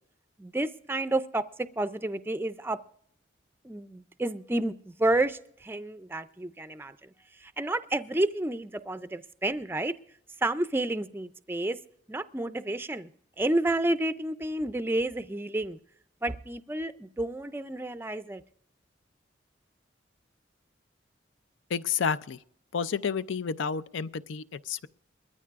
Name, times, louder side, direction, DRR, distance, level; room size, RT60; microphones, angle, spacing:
voice 1, 0.4-1.4 1.8-2.8 3.6-7.1 7.4-9.9 10.4-11.8 12.1-13.1 13.4-15.8 16.2-18.4, right 2 dB, 10° right, 0.4 m, -30 dB
voice 2, 21.7-22.4 22.7-24.9, left 6 dB, 85° left, 0.5 m, -30 dB
21.0 x 14.0 x 2.5 m
head